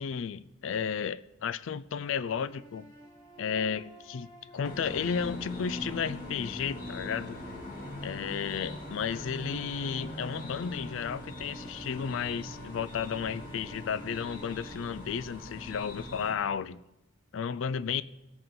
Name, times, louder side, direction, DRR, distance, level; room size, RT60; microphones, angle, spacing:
voice 1, 0.0-2.9 3.4-7.4 8.0-16.8 17.3-18.0, left 7 dB, 70° left, 0.4 m, -33 dB
sound 1, 2.0-16.2, right 1 dB, 25° left, 2.5 m, -52 dB
sound 2, 4.6-16.3, left 1 dB, 45° left, 2.6 m, -42 dB
17.5 x 7.8 x 3.8 m
head